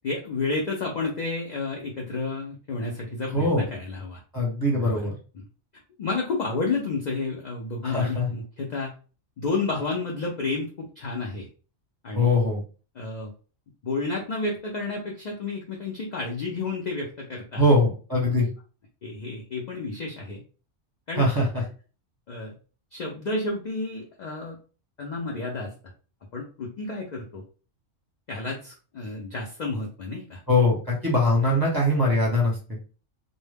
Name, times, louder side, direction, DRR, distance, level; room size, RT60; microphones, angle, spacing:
voice 1, 0.0-4.2 4.7-5.0 6.0-8.9 9.4-11.5 12.0-12.4 13.0-13.3 13.8-17.7 19.0-20.4 21.1-21.3 22.3-22.5 22.9-24.6 25.0-25.7 26.3-27.4 28.3-30.4, left 3 dB, 70° left, -1 dB, 0.4 m, -31 dB
voice 2, 3.3-3.6 4.3-5.2 7.8-8.3 12.1-12.6 17.6-18.5 21.2-21.5 30.5-32.8, left 1 dB, 20° right, -3 dB, 0.7 m, -22 dB
2.1 x 2.1 x 3.3 m, 0.36 s
omnidirectional pair, 1.3 m